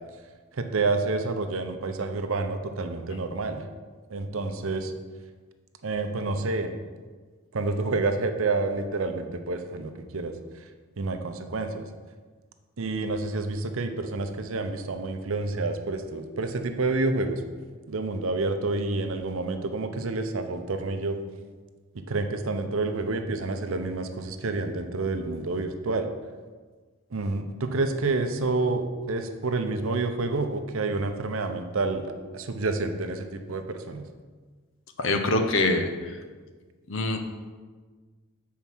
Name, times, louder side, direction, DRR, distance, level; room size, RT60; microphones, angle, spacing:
voice 1, 0.5-3.7 4.1-4.9 5.8-6.7 7.5-10.3 11.0-11.8 12.8-17.4 17.9-21.2 21.9-26.1 27.1-32.1 32.3-34.0, right 3 dB, 65° right, 7 dB, 0.6 m, -28 dB
voice 2, 35.0-36.1 36.9-37.2, left 2 dB, 60° left, 5 dB, 0.8 m, -24 dB
7.2 x 4.6 x 6.0 m, 1.4 s
head